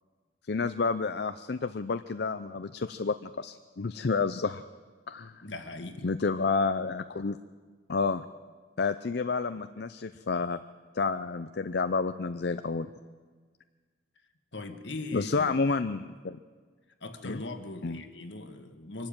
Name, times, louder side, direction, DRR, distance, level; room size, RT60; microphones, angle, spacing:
voice 1, 0.5-4.6 5.1-5.4 6.0-7.4 7.9-8.2 8.8-10.6 10.9-12.9 15.1-16.4 17.2-17.4 17.8-18.0, left 4 dB, 60° left, 10 dB, 0.6 m, -30 dB
voice 2, 5.4-6.1 14.5-15.6 17.0-19.1, left 2 dB, 80° left, 7 dB, 1.7 m, -39 dB
24.0 x 12.0 x 8.8 m, 1.5 s
head